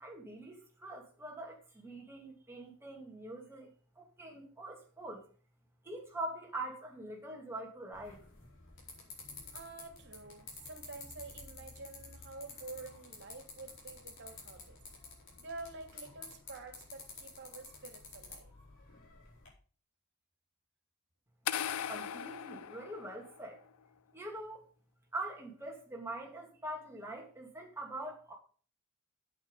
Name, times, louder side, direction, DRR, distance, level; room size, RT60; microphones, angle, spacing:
voice 1, 0.0-5.2 5.8-8.2 21.9-23.6 24.1-24.6 25.1-28.3, right 1 dB, 10° right, 0 dB, 2.5 m, -44 dB
sound 1, 7.9-19.5, left 3 dB, 60° left, 4.6 m, -51 dB
voice 2, 9.5-14.8 15.4-18.6, right 3 dB, 55° right, 5 dB, 2.3 m, -48 dB
sound 2, 21.5-23.6, left 9 dB, 85° left, 0.5 m, -38 dB
8.7 x 8.4 x 5.3 m, 0.40 s
head